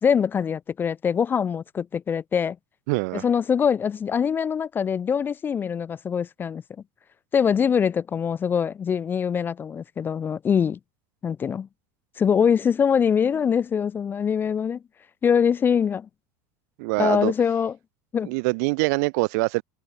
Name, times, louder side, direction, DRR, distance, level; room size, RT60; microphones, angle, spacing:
voice 1, 0.0-2.6 3.1-6.6 7.3-10.8 11.2-11.7 12.2-14.8 15.2-16.1 17.0-17.8 18.1-18.3, left 7 dB, 20° left, 0.4 m, -23 dB
voice 2, 2.9-3.2 16.8-17.3 18.2-19.6, right 29 dB, 70° right, 0.7 m, -24 dB
supercardioid pair, 135°, 10 cm